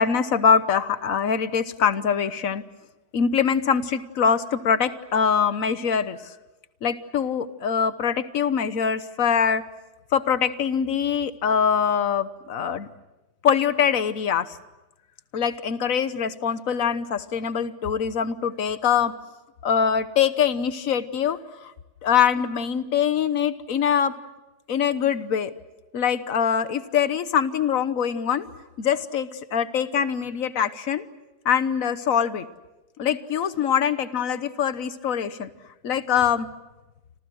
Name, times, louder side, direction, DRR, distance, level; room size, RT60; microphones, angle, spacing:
voice 1, 0.0-2.6 3.1-6.3 6.8-9.6 10.1-12.9 13.4-14.6 15.3-19.1 19.6-21.7 22.0-24.1 24.7-25.5 25.9-28.4 28.8-31.0 31.4-32.5 33.0-35.5 35.8-36.5, left 7 dB, 55° left, 13 dB, 1.4 m, -23 dB
30.0 x 26.0 x 6.4 m, 1.0 s
omnidirectional pair, 1.8 m